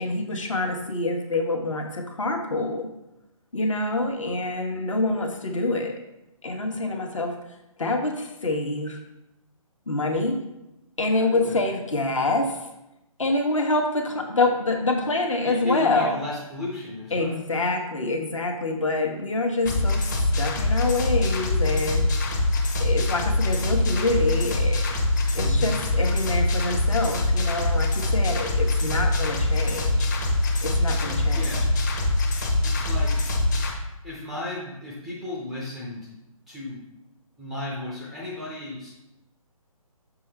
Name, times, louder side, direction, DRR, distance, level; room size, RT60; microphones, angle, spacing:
voice 1, 0.0-2.9 3.5-5.9 6.4-7.3 7.8-9.0 9.9-10.4 11.0-12.7 13.2-16.2 17.1-22.0 22.8-25.0 25.3-30.1 30.6-31.5, left 2 dB, 60° left, 3 dB, 1.2 m, -26 dB
voice 2, 11.1-11.6 15.4-17.3 25.3-25.7 31.3-31.7 32.6-33.2 34.0-36.1 36.5-36.8 37.4-38.9, left 2 dB, ahead, -5 dB, 0.4 m, -34 dB
sound 1, 19.7-33.7, left 2 dB, 30° left, 0.9 m, -23 dB
6.8 x 4.9 x 3.3 m, 0.91 s
figure-of-eight pair, 140°, 19 cm